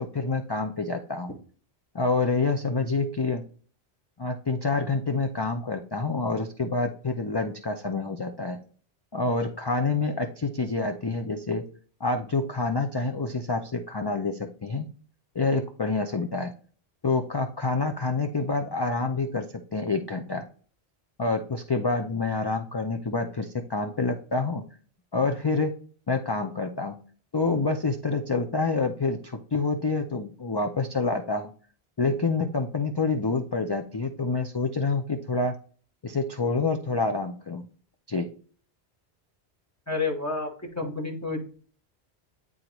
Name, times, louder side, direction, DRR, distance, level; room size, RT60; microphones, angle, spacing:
voice 1, 0.0-1.3 1.9-3.4 4.2-8.6 9.1-11.6 12.0-14.9 15.3-16.5 17.0-20.4 21.2-24.6 25.1-25.7 26.1-27.0 27.3-31.5 32.0-35.5 36.0-37.6 38.1-38.3, left 3 dB, 35° left, 5 dB, 0.4 m, -27 dB
voice 2, 39.9-41.5, left 3 dB, 15° left, 0 dB, 1.3 m, -30 dB
9.4 x 3.9 x 3.0 m, 0.42 s
omnidirectional pair, 1.1 m